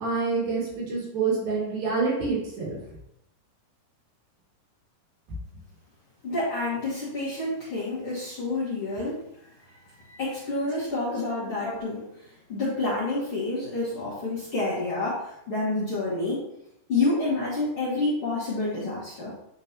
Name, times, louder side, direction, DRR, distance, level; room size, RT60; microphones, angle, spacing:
voice 1, 0.0-2.8 11.6-11.8, right 4 dB, 70° right, -6 dB, 3.8 m, -27 dB
voice 2, 6.2-9.2 10.1-12.1 12.5-16.4 16.9-19.3, left 2 dB, 50° left, -9 dB, 1.7 m, -28 dB
9.6 x 3.7 x 2.8 m, 0.78 s
omnidirectional pair, 4.3 m